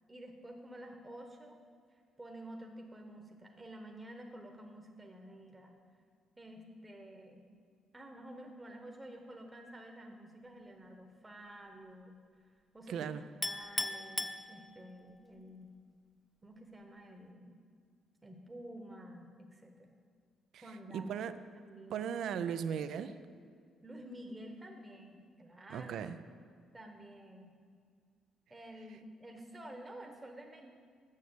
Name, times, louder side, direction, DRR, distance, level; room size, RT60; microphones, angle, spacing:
voice 1, 0.1-1.6 1.9-5.8 6.4-7.4 7.9-13.1 13.4-15.7 16.4-17.6 18.2-19.9 20.6-21.1 21.6-22.1 23.8-25.9 26.7-27.5 28.5-30.7, right 1 dB, 15° right, 3 dB, 0.9 m, -50 dB
voice 2, 12.9-13.2 20.5-20.6 20.9-21.3 21.9-23.1 25.7-26.2, right 8 dB, 75° right, 12 dB, 0.4 m, -37 dB
Chink clink, 13.4-15.1, left 2 dB, 10° left, 0.5 m, -38 dB
7.4 x 6.4 x 7.8 m, 2.1 s
cardioid pair, 90°, 0 cm